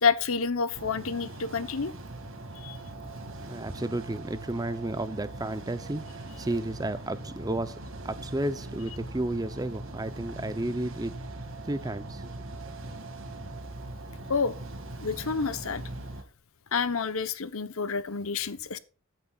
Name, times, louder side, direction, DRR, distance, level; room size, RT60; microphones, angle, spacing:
voice 1, 0.0-1.9 2.6-2.8 14.3-14.5 15.0-15.8 16.7-18.8, left 5 dB, 70° left, 0.9 m, -28 dB
sound 1, 0.7-16.2, right 2 dB, 65° right, 2.2 m, -41 dB
voice 2, 3.5-7.8 8.0-11.1 11.6-12.3, right 1 dB, 15° right, 0.6 m, -32 dB
14.5 x 9.0 x 2.4 m
head